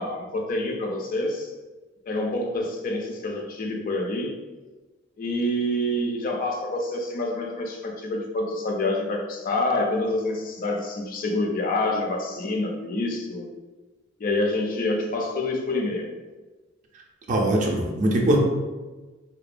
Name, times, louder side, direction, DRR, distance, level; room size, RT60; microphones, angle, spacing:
voice 1, 0.0-1.5 2.1-4.3 5.2-13.5 14.2-16.1, left 1 dB, 45° left, 2 dB, 0.4 m, -27 dB
voice 2, 17.3-18.4, right 1 dB, 40° right, 0 dB, 0.4 m, -21 dB
2.7 x 2.1 x 2.4 m, 1.2 s
head